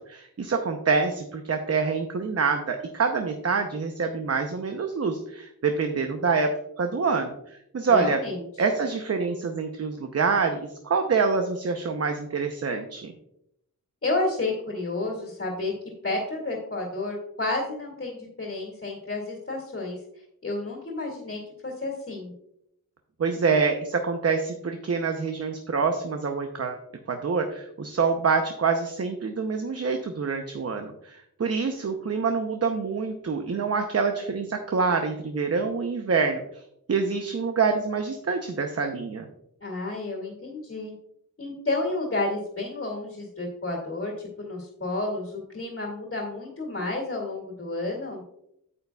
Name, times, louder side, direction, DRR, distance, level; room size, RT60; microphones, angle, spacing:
voice 1, 0.1-6.5 6.8-8.2 8.6-13.1 23.2-26.8 27.1-36.4 36.9-39.3, right 5 dB, 45° right, 5 dB, 0.7 m, -26 dB
voice 2, 7.9-8.4 14.0-15.7 16.0-20.0 20.4-22.3 39.6-40.9 41.4-48.2, left 2 dB, 40° left, -3 dB, 2.2 m, -31 dB
9.3 x 8.2 x 2.3 m, 0.77 s
wide cardioid pair, 110°, 35 cm